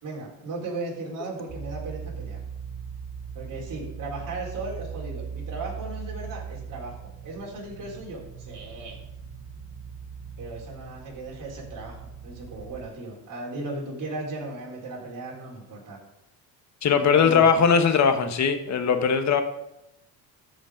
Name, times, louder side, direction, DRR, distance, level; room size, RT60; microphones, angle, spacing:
voice 1, 0.0-2.4 3.3-9.0 10.4-16.0 17.0-17.6, right 2 dB, 50° right, -2 dB, 4.0 m, -36 dB
sound 1, 1.5-12.9, right 6 dB, 75° right, 3.1 m, -39 dB
voice 2, 16.8-19.4, left 6 dB, 45° left, 8 dB, 1.1 m, -20 dB
13.5 x 5.3 x 5.1 m, 0.88 s
cardioid pair, 115°, 40 cm